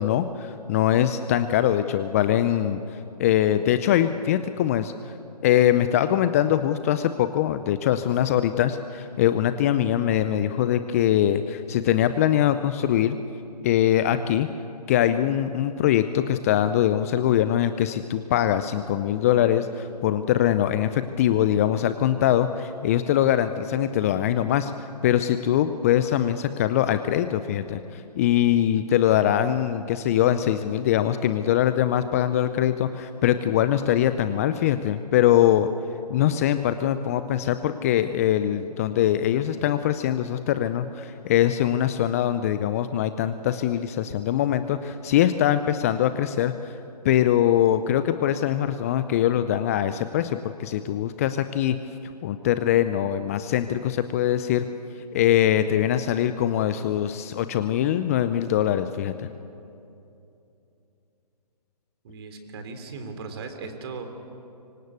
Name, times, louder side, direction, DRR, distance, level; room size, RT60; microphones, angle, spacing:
voice 1, 0.0-2.8 3.2-4.9 5.4-13.2 13.6-14.5 14.9-35.7 36.1-46.7 47.0-51.8 52.2-54.7 55.1-59.3, left 11 dB, 20° left, 11 dB, 0.6 m, -22 dB
voice 2, 62.0-64.1, right 4 dB, 40° right, 6 dB, 3.4 m, -37 dB
25.0 x 25.0 x 8.3 m, 2.7 s
figure-of-eight pair, 145°, 21 cm